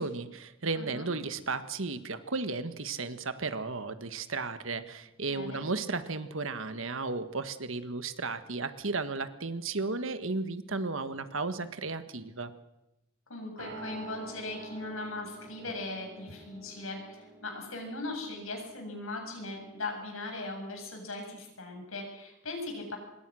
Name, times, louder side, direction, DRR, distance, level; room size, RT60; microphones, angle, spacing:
voice 1, 0.0-12.5, right 3 dB, 70° right, 10 dB, 1.6 m, -34 dB
voice 2, 0.7-1.1 5.3-5.6 13.3-23.0, left 2 dB, 80° left, 3 dB, 7.9 m, -39 dB
sound 1, 1.4-5.1 5.4-5.5 13.6-19.8, right 1 dB, 85° right, 4.7 m, -49 dB
25.5 x 22.0 x 6.4 m, 0.93 s
head